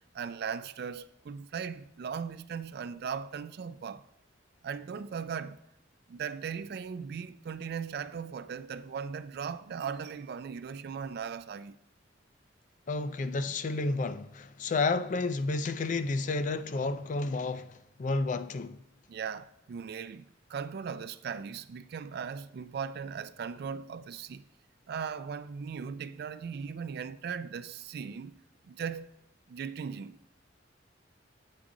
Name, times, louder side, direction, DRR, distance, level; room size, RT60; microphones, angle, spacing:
voice 1, 0.1-4.1 4.6-5.6 6.1-11.8 19.1-24.4 24.9-29.1 29.5-30.2, right 6 dB, 55° right, 0.3 m, -38 dB
voice 2, 12.9-18.8, left 3 dB, 40° left, 0.4 m, -31 dB
8.4 x 4.9 x 3.7 m
head